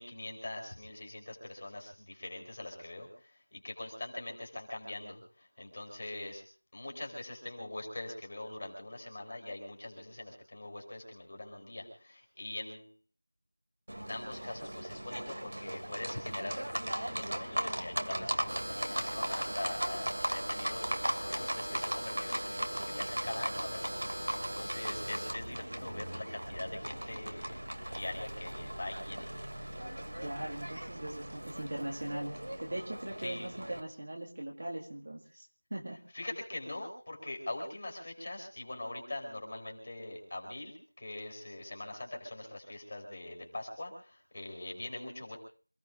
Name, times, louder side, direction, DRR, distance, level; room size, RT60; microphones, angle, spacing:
voice 1, 0.0-6.4 6.7-12.9 14.1-29.3 33.2-33.5 36.1-45.4, left 1 dB, 20° left, 1 dB, 4.4 m, -43 dB
Livestock farm animals working animals, 13.9-33.8, right 1 dB, 60° right, 2.7 m, -38 dB
sound 1, 18.5-25.3, equal, 85° right, 2.8 m, -40 dB
voice 2, 30.2-35.5 35.7-36.0, right 1 dB, 25° right, -1 dB, 2.0 m, -40 dB
28.0 x 18.0 x 2.6 m, 0.43 s
figure-of-eight pair, 180°, 0 cm